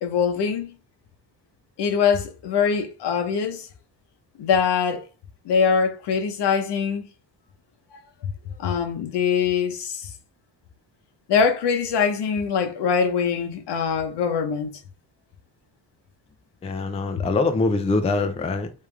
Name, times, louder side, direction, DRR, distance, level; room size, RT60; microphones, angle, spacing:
voice 1, 0.0-0.7 1.8-3.7 4.4-5.0 5.4-7.0 8.6-10.1 11.3-14.7, left 6 dB, 75° left, 0.9 m, -23 dB
voice 2, 16.6-18.7, left 3 dB, 15° left, 0.4 m, -23 dB
3.3 x 3.2 x 3.3 m
cardioid pair, 130°, 42 cm